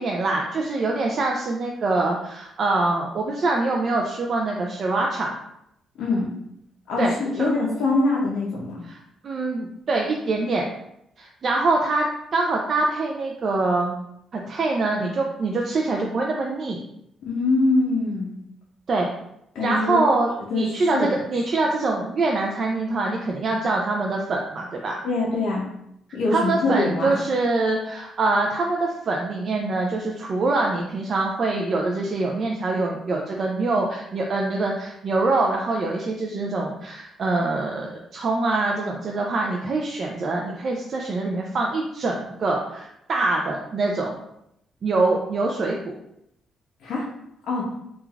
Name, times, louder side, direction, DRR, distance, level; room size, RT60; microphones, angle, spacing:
voice 1, 0.0-5.4 7.0-7.1 8.9-9.0 9.2-10.7 11.2-12.0 12.3-13.9 14.3-16.8 18.9-19.1 19.6-25.0 26.3-44.2 44.8-45.9, right 3 dB, 50° right, 0 dB, 0.3 m, -24 dB
voice 2, 6.0-6.3 6.9-8.8 17.3-18.3 19.5-20.0 20.5-21.1 25.0-25.7 26.1-27.2 46.8-47.0 47.5-47.6, left 2 dB, 70° left, -5 dB, 0.5 m, -23 dB
3.1 x 2.3 x 2.3 m, 0.78 s
cardioid pair, 90°, 0 cm